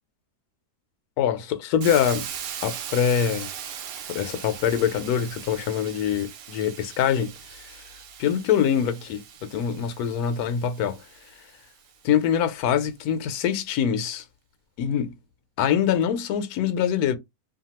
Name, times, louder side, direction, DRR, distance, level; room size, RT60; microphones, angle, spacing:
voice 1, 1.2-2.3 2.6-3.5 4.1-7.7 8.2-9.2 9.5-11.0 12.0-14.2 14.8-15.1 15.6-17.2, left 8 dB, 75° left, 1.1 m, -24 dB
Hiss, 1.8-11.7, right 8 dB, 75° right, 1.0 m, -39 dB
2.8 x 2.3 x 2.9 m
omnidirectional pair, 1.6 m